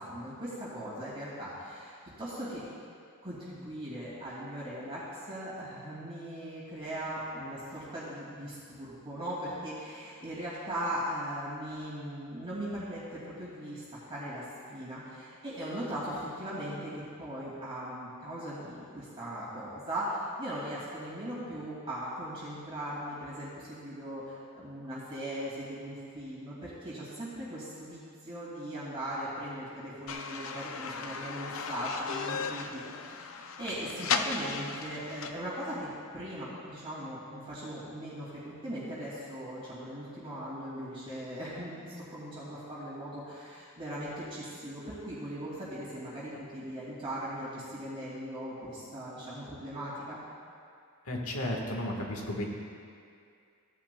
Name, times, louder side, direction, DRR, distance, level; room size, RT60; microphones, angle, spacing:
voice 1, 0.0-2.7 3.2-50.2, equal, 25° right, -10 dB, 2.4 m, -39 dB
sound 1, 30.1-35.3, left 5 dB, 60° left, 0.5 m, -36 dB
voice 2, 51.0-52.5, left 1 dB, 80° left, 0 dB, 1.5 m, -33 dB
16.0 x 10.0 x 2.3 m, 2.3 s
head